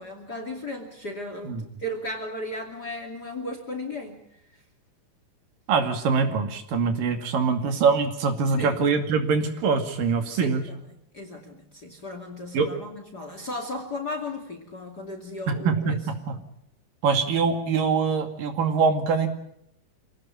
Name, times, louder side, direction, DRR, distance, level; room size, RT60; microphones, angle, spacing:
voice 1, 0.0-4.2 8.6-8.8 10.3-10.8 11.1-16.0, left 1 dB, 30° left, 5 dB, 2.9 m, -35 dB
voice 2, 5.7-10.6 12.5-12.7 15.5-16.4 17.0-19.3, right 5 dB, 80° right, 6 dB, 4.1 m, -23 dB
26.5 x 18.0 x 7.3 m, 0.76 s
omnidirectional pair, 3.9 m